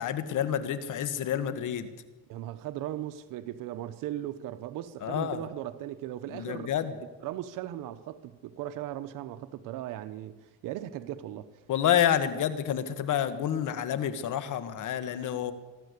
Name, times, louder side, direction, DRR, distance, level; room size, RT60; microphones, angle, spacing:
voice 1, 0.0-1.9 5.0-5.4 6.3-6.9 11.7-15.5, left 9 dB, 70° left, 1.8 m, -28 dB
voice 2, 2.3-6.7 7.0-11.5, right 13 dB, 90° right, 1.0 m, -38 dB
25.0 x 12.5 x 8.3 m
cardioid pair, 90°, 32 cm